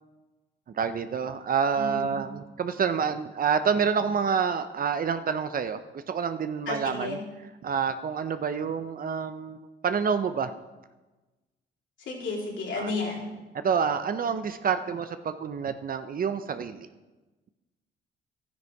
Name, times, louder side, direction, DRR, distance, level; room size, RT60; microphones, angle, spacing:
voice 1, 0.7-7.2 7.6-9.6 9.8-10.5 12.7-12.9 13.6-16.9, right 6 dB, 45° right, 10 dB, 0.7 m, -28 dB
voice 2, 1.8-2.2 6.7-7.2 12.1-13.3, left 3 dB, 75° left, -2 dB, 3.6 m, -32 dB
12.5 x 9.7 x 4.8 m, 1.2 s
cardioid pair, 90°, 20 cm